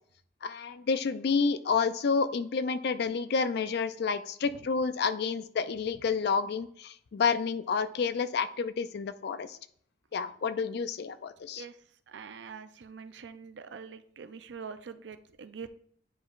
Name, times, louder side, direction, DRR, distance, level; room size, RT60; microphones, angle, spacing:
voice 1, 0.4-9.6 10.1-11.6, left 5 dB, 60° left, 13 dB, 0.4 m, -29 dB
voice 2, 12.1-15.7, right 6 dB, 65° right, 10 dB, 0.4 m, -44 dB
9.4 x 5.0 x 2.4 m, 0.63 s
head